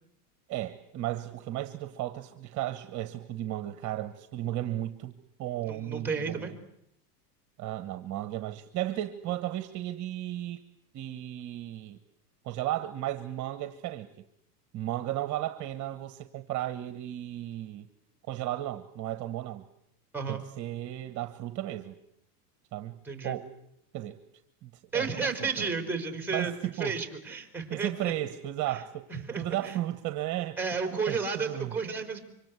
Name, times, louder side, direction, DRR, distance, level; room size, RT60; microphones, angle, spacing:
voice 1, 0.5-6.6 7.6-10.6 10.9-12.0 12.4-14.1 14.7-17.9 18.3-19.6 20.3-22.0 22.7-23.0 23.2-23.5 23.9-24.2 24.6-25.7 26.3-27.0 27.7-29.1 29.4-30.6 31.1-31.8, right 14 dB, 35° right, 10 dB, 1.3 m, -34 dB
voice 2, 5.7-6.5 20.1-20.4 23.0-23.4 24.9-28.1 28.7-28.8 29.1-29.8 30.6-32.2, right 5 dB, 5° right, 5 dB, 4.1 m, -32 dB
26.0 x 24.5 x 8.2 m, 0.78 s
supercardioid pair, 130°, 47 cm